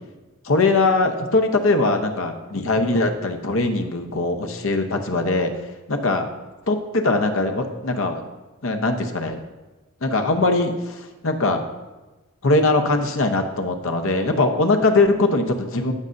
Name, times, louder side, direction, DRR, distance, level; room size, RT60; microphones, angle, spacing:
voice 1, 0.4-5.5 5.9-6.3 6.7-8.2 8.6-9.4 10.0-11.7 12.4-15.9, left 2 dB, 60° left, 5 dB, 0.9 m, -21 dB
15.0 x 6.4 x 2.7 m, 1.2 s
head